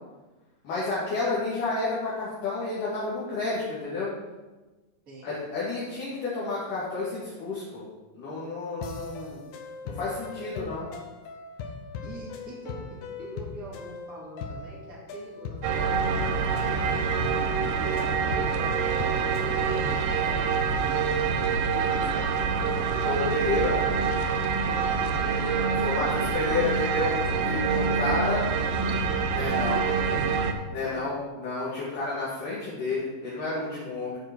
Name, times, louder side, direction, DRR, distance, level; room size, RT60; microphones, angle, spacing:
voice 1, 0.6-4.1 5.2-7.9 8.1-9.4 9.8-10.9 23.0-23.9 25.8-28.4 29.3-29.8 30.7-34.2, left 3 dB, 65° left, -8 dB, 3.5 m, -30 dB
sound 1, 8.8-19.5, left 4 dB, 80° left, 2.6 m, -40 dB
voice 2, 12.0-16.9 17.4-22.6 25.0-26.8 27.3-30.3 30.7-31.1, right 1 dB, 25° right, -5 dB, 2.6 m, -44 dB
sound 2, 15.6-30.5, right 5 dB, 90° right, 2.6 m, -26 dB
13.5 x 5.2 x 4.5 m, 1.2 s
omnidirectional pair, 4.0 m